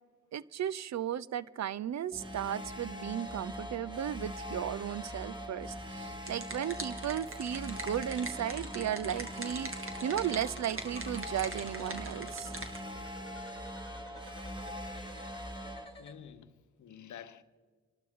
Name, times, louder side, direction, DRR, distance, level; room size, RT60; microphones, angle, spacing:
voice 1, 0.3-12.5, right 10 dB, 65° right, 0.5 m, -35 dB
sound 1, 2.1-15.8, equal, 15° right, 2.0 m, -42 dB
sound 2, 5.9-12.8, right 2 dB, 45° right, 1.8 m, -43 dB
sound 3, 8.1-16.1, left 1 dB, 15° left, 1.8 m, -52 dB
voice 2, 16.0-17.4, left 9 dB, 80° left, 0.8 m, -49 dB
27.5 x 12.0 x 3.6 m
cardioid pair, 45°, 29 cm